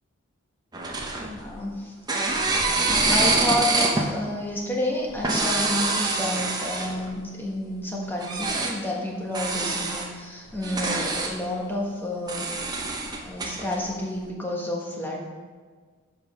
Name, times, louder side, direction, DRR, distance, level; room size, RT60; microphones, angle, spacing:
sound 1, 0.7-1.7 2.1-4.1 5.1-7.1 8.2-8.8 9.3-10.1 10.5-11.3 12.3-13.8, right 3 dB, 20° right, 0.8 m, -25 dB
voice 1, 1.2-1.9 3.1-12.5 13.2-15.2, left 1 dB, 10° left, -2 dB, 1.3 m, -30 dB
7.8 x 5.2 x 6.4 m, 1.5 s
head